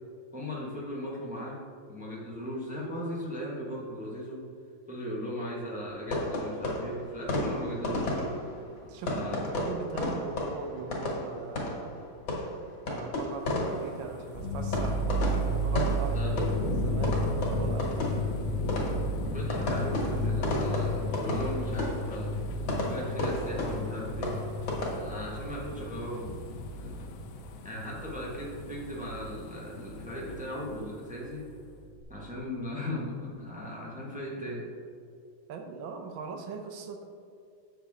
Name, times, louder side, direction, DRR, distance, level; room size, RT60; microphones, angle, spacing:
voice 1, 0.3-1.6 1.9-4.4 4.9-8.3 9.1-9.7 16.1-16.5 19.3-22.4 22.7-24.4 24.9-26.3 26.7-27.1 27.6-31.4 32.1-34.6, equal, 5° right, -5 dB, 1.1 m, -37 dB
sound 1, 6.1-24.9, left 1 dB, 70° left, 2.4 m, -34 dB
voice 2, 8.8-11.9 12.9-18.0 35.5-37.1, right 4 dB, 80° right, 4 dB, 1.6 m, -40 dB
sound 2, 13.4-31.6 32.0-32.1, left 4 dB, 85° left, 0.7 m, -40 dB
sound 3, 14.3-29.4 29.7-30.8 31.2-31.3 31.6-32.3, right 1 dB, 30° left, 1.7 m, -33 dB
7.9 x 6.5 x 3.6 m, 2.4 s
omnidirectional pair, 2.2 m